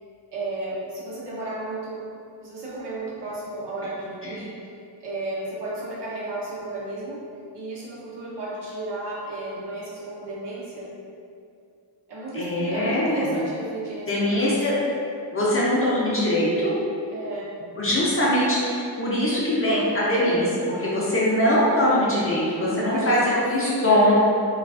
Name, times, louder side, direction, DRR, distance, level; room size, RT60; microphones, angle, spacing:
voice 1, 0.3-2.0 2.4-4.5 5.0-7.2 7.5-10.9 12.1-14.8 17.1-17.5 22.7-23.8, right 2 dB, 65° right, -7 dB, 0.8 m, -33 dB
voice 2, 12.3-13.3 14.1-14.7 15.3-16.7 17.8-23.2 23.5-24.2, left 1 dB, 30° left, -7 dB, 0.4 m, -22 dB
2.3 x 2.3 x 2.3 m, 2.5 s
wide cardioid pair, 125°, 44 cm